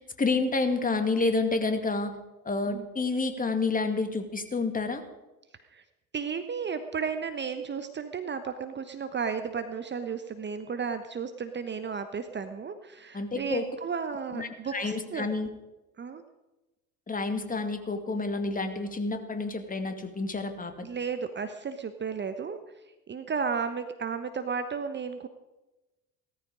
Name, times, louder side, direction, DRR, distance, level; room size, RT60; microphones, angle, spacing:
voice 1, 0.2-2.1 2.4-5.0 13.1-13.7 14.3-15.5 17.1-20.7, left 3 dB, 20° left, 7 dB, 2.4 m, -29 dB
voice 2, 6.1-15.3 16.0-16.2 20.8-25.3, right 6 dB, 25° right, 8 dB, 1.1 m, -34 dB
18.0 x 14.0 x 5.1 m, 1.0 s
figure-of-eight pair, 65°, 44 cm